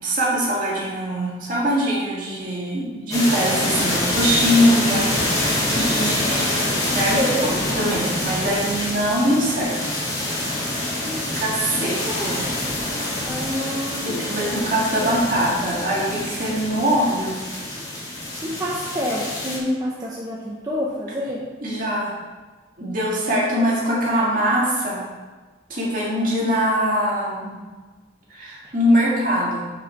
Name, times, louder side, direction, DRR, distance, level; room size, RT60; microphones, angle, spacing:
voice 1, 0.0-6.5 6.9-9.8 11.1-12.4 14.0-17.4 21.6-22.1 22.8-25.0 25.7-27.6 28.3-29.6, equal, 45° right, -5 dB, 2.2 m, -22 dB
sound 1, 3.1-19.6, left 1 dB, 20° left, 1.6 m, -26 dB
voice 2, 7.1-7.5 11.0-11.3 11.8-12.3 13.2-14.1 14.4-14.6 18.4-21.4, equal, 20° right, -5 dB, 0.8 m, -28 dB
7.4 x 5.6 x 4.7 m, 1.3 s
head